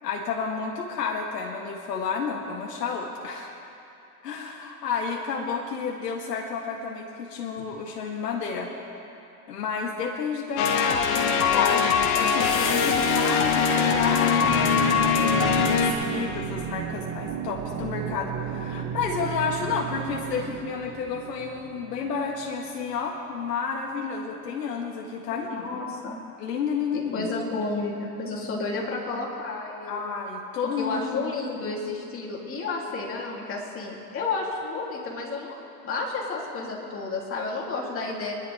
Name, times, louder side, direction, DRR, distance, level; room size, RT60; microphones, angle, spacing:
voice 1, 0.0-3.6 4.2-8.7 9.5-25.7 26.4-27.3 29.9-31.3, left 5 dB, 85° left, 0 dB, 1.7 m, -31 dB
sound 1, 10.6-15.9, left 6 dB, 60° left, 1.9 m, -22 dB
sound 2, 14.4-22.9, right 8 dB, 30° right, 1.2 m, -34 dB
voice 2, 25.3-26.2 26.9-30.0 30.8-38.3, left 3 dB, 25° left, -3 dB, 3.3 m, -31 dB
24.5 x 11.0 x 3.6 m, 2.7 s
hypercardioid pair, 110°, 47 cm